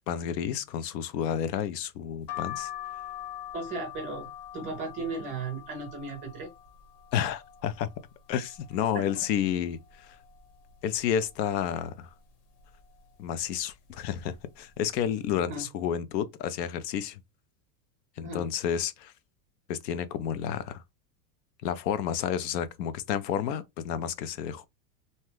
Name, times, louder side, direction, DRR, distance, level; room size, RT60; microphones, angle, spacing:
voice 1, 0.1-2.7 7.1-7.9 8.3-10.2 10.8-12.1 13.2-17.2 18.2-19.1 19.7-20.8 21.6-24.7, left 9 dB, 90° left, 0.6 m, -30 dB
sound 1, 2.3-8.0 8.4-9.2 9.6-9.7 9.8-11.0 11.5-11.8 12.6-12.9 13.7-13.9 14.2-14.4, left 12 dB, 70° left, 1.1 m, -43 dB
voice 2, 3.5-4.3 4.5-6.5 8.9-9.1 15.5-15.7 18.2-18.4, right 3 dB, 20° right, 0.4 m, -36 dB
2.7 x 2.2 x 3.1 m
supercardioid pair, 155°, 48 cm